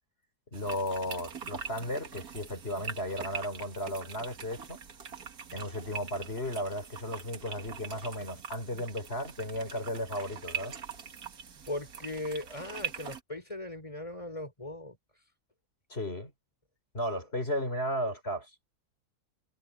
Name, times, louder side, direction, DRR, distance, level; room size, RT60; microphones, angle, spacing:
voice 1, 0.5-4.8 5.5-10.8 15.9-16.3 16.9-18.5, equal, 40° left, 4.9 m, -35 dB
sound 1, 0.5-13.2, right 7 dB, 70° right, 2.0 m, -43 dB
voice 2, 11.7-15.0, left 1 dB, 20° left, 4.1 m, -38 dB
omnidirectional pair, 1.7 m